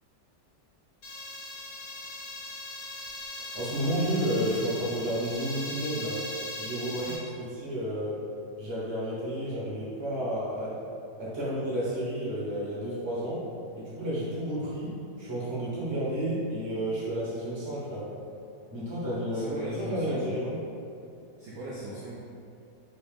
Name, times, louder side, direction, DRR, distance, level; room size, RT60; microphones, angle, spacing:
sound 1, 1.0-7.2, left 2 dB, 65° left, 1.2 m, -39 dB
voice 1, 3.5-6.2 6.6-7.0 7.6-8.2 8.6-10.8 11.2-13.4 13.7-18.1 18.7-20.6, equal, 25° right, -8 dB, 0.7 m, -31 dB
voice 2, 6.9-7.2 19.3-20.4 21.4-22.2, right 2 dB, 65° right, -8 dB, 0.8 m, -38 dB
3.4 x 2.7 x 3.4 m, 2.5 s
omnidirectional pair, 1.8 m